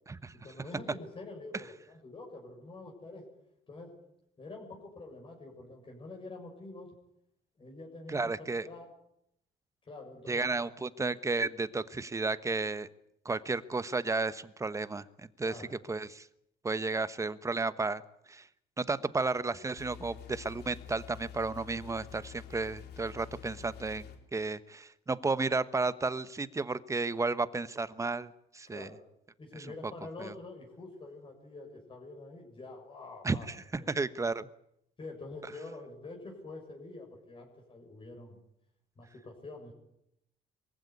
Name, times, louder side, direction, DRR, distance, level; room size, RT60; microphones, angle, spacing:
voice 1, 0.4-3.3 3.7-4.0 4.4-6.9 7.6-8.9 9.8-10.7 15.4-15.8 28.7-29.0 29.4-33.5 33.8-33.9 35.0-38.4 39.0-39.7, left 2 dB, 30° left, 0 dB, 7.0 m, -46 dB
voice 2, 8.1-8.6 10.3-12.9 13.2-16.3 16.6-18.0 18.3-18.5 18.8-24.0 24.3-28.9 29.8-29.9 30.2-30.3 33.2-33.6 33.9-34.5, right 3 dB, 20° right, 15 dB, 1.1 m, -33 dB
sound 1, 19.8-24.2, left 8 dB, 75° left, 3.9 m, -48 dB
23.5 x 15.5 x 9.7 m, 0.77 s
cardioid pair, 110°, 17 cm